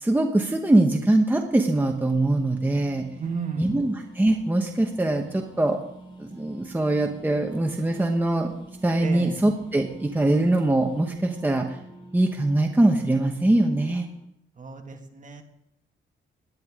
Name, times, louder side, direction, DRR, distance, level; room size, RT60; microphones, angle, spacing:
voice 1, 0.0-3.0 3.6-5.8 6.2-8.5 8.8-11.7 12.1-14.0, right 1 dB, 10° right, 2 dB, 0.9 m, -22 dB
sound 1, 1.5-14.3, right 2 dB, 25° left, 3.0 m, -46 dB
voice 2, 3.2-3.8 9.0-9.4 14.6-15.4, right 4 dB, 40° right, 3 dB, 1.8 m, -33 dB
18.5 x 10.5 x 3.6 m, 0.78 s
wide cardioid pair, 150°, 21 cm